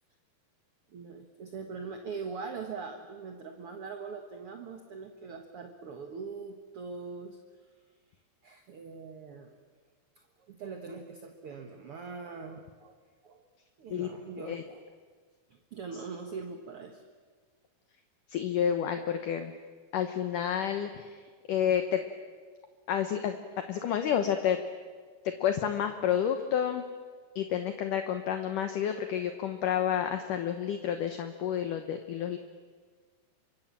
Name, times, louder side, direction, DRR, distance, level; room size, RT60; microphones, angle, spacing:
voice 1, 0.9-7.4 8.4-9.5 10.4-13.4 13.8-15.0 15.5-17.0, right 5 dB, 55° right, 5 dB, 1.6 m, -42 dB
voice 2, 18.3-19.5 19.9-21.2 21.5-22.0 22.9-23.4 23.7-24.6 25.4-26.8 27.4-32.4, left 9 dB, 65° left, 7 dB, 2.4 m, -30 dB
29.0 x 25.0 x 7.5 m, 1.5 s
omnidirectional pair, 4.5 m